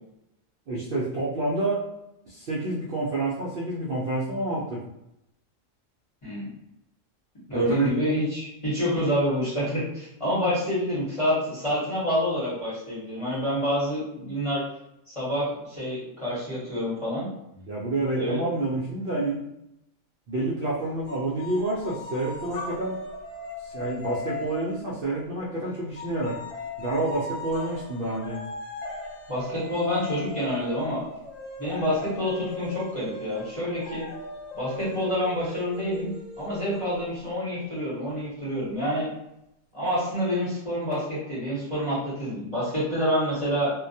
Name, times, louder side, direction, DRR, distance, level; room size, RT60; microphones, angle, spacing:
voice 1, 0.7-1.9 2.3-4.8 7.5-7.9 17.7-19.4 20.3-23.0 23.6-26.4 26.8-28.4, right 2 dB, 60° right, -6 dB, 0.6 m, -28 dB
voice 2, 6.2-6.5 7.5-14.6 15.1-17.3 18.1-18.4 29.3-31.0 31.6-34.0 34.5-36.1 36.4-39.1 39.7-43.7, equal, 30° left, -9 dB, 0.9 m, -27 dB
sound 1, 21.1-25.4 26.0-37.3, left 2 dB, 75° left, 1.0 m, -38 dB
2.2 x 2.1 x 2.6 m, 0.84 s
omnidirectional pair, 1.4 m